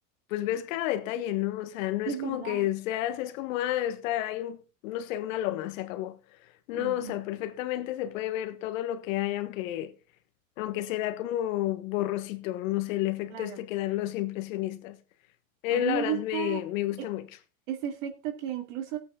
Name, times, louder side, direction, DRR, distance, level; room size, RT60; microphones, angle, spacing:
voice 1, 0.3-6.2 6.7-9.9 10.6-15.0 15.6-17.3, left 13 dB, 65° left, 1.4 m, -31 dB
voice 2, 2.1-2.7 6.7-7.1 13.3-13.6 15.7-16.6 17.0-17.1 17.7-19.0, right 10 dB, 60° right, 2.4 m, -33 dB
16.0 x 8.5 x 3.8 m
supercardioid pair, 130°, 43 cm